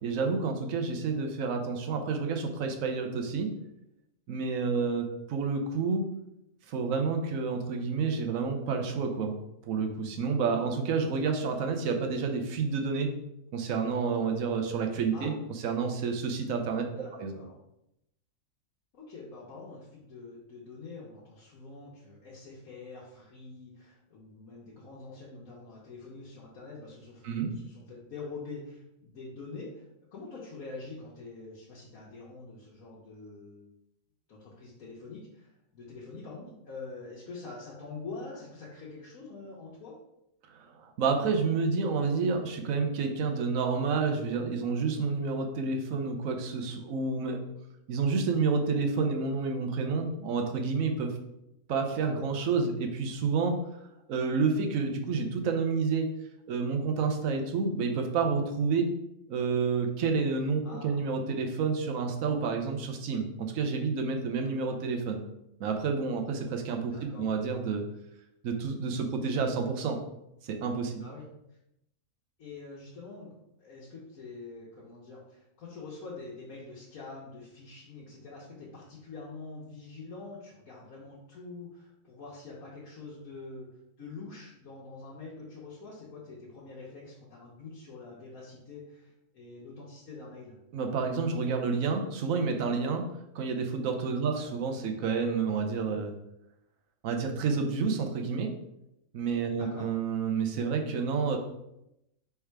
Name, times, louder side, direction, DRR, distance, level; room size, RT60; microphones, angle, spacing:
voice 1, 0.0-3.5 4.3-6.1 6.7-9.4 9.7-13.1 13.5-15.3 15.6-16.9 17.1-17.3 27.2-27.5 40.5-47.4 47.9-51.1 51.7-56.1 56.5-58.9 59.3-65.2 65.6-67.8 68.4-70.0 70.4-70.9 90.7-93.1 93.3-96.1 97.0-98.5 99.1-101.4, right 5 dB, 75° right, 4 dB, 1.1 m, -29 dB
voice 2, 16.9-17.5 18.9-33.7 34.3-40.0 60.6-61.0 66.9-67.3 71.0-71.6 72.4-83.7 84.0-90.6 94.3-94.4 99.6-99.9, left 3 dB, 85° left, -6 dB, 1.4 m, -45 dB
3.5 x 3.4 x 4.5 m, 0.84 s
omnidirectional pair, 1.4 m